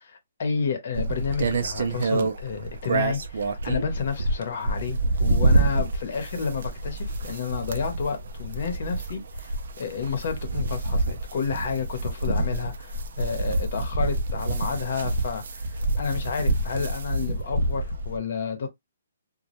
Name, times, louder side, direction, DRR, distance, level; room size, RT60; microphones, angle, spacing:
voice 1, 0.0-18.7, left 6 dB, 55° left, 0.8 m, -31 dB
sound 1, 0.9-18.2, right 2 dB, 65° right, 0.4 m, -27 dB
2.2 x 2.0 x 2.9 m
hypercardioid pair, 155°, 0 cm